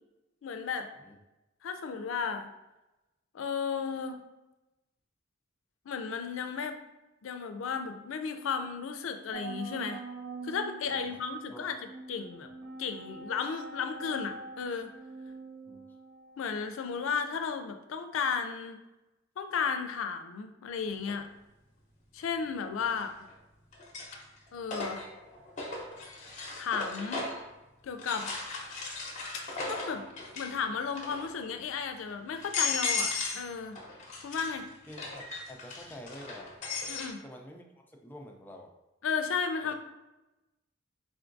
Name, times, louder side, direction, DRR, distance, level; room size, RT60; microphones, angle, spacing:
voice 1, 0.4-0.9 1.6-2.5 3.3-4.2 5.9-6.8 7.2-10.0 10.4-11.8 12.1-12.5 12.8-14.9 16.4-18.8 19.4-21.3 22.1-23.1 24.5-25.0 26.6-27.3 27.8-28.3 29.7-30.1 30.4-33.8 34.2-34.7 36.9-37.2 39.0-39.7, left 6 dB, 85° left, 7 dB, 0.4 m, -34 dB
sound 1, 9.3-17.5, right 3 dB, 80° right, 0.5 m, -45 dB
sound 2, 21.1-21.2 22.9-23.3 23.7-27.5 28.0-30.6 30.9-31.4 31.9-32.0 32.4-33.5 33.7-37.1, left 4 dB, 40° left, 0.7 m, -36 dB
voice 2, 34.9-36.5 37.2-38.7 39.6-39.7, equal, 10° left, 2 dB, 0.4 m, -48 dB
3.7 x 3.4 x 2.5 m, 1.0 s
head